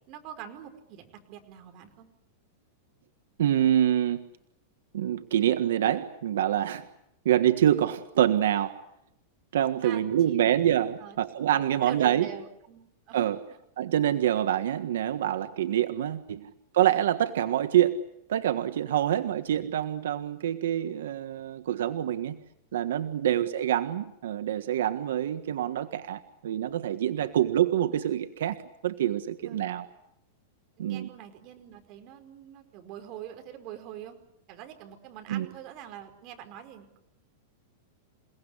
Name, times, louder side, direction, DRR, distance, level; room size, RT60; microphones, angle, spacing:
voice 1, 0.1-2.1 9.8-10.4 11.0-11.2 11.8-13.4 16.4-16.5 19.1-19.2 23.3-23.5 27.2-27.4 29.4-29.6 30.8-34.2 34.5-37.0, right 10 dB, 35° right, 6 dB, 4.9 m, -45 dB
voice 2, 3.4-4.3 4.9-6.8 7.2-8.8 9.5-12.3 13.1-13.4 13.8-22.4 22.7-29.9 30.8-31.1 35.3-35.5, right 11 dB, 85° right, 9 dB, 1.5 m, -26 dB
28.5 x 18.5 x 9.8 m, 0.78 s
supercardioid pair, 165°, 0 cm